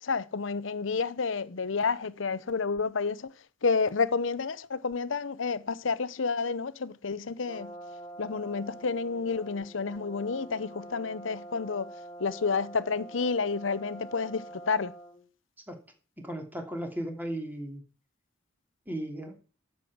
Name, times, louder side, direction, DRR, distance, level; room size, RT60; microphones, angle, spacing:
voice 1, 0.0-3.3 3.6-7.7 8.2-11.9 12.2-14.9, left 4 dB, 80° left, 0.7 m, -30 dB
Brass instrument, 7.5-15.3, right 1 dB, 25° left, 1.1 m, -46 dB
voice 2, 16.2-17.8 18.9-19.4, right 1 dB, 10° right, 2.8 m, -36 dB
12.0 x 7.6 x 6.2 m
head